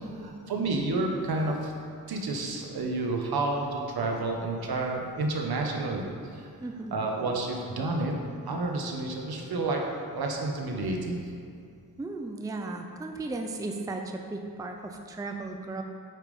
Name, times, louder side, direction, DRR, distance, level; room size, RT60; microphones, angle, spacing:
voice 1, 0.2-1.7 2.1-6.0 6.3-6.5 6.9-8.1 8.4-9.8 10.1-11.2, right 2 dB, 70° right, 1 dB, 1.3 m, -30 dB
voice 2, 6.6-6.9 12.0-15.8, right 2 dB, 10° right, 3 dB, 0.5 m, -36 dB
9.0 x 5.3 x 5.4 m, 2.3 s
wide cardioid pair, 135°, 39 cm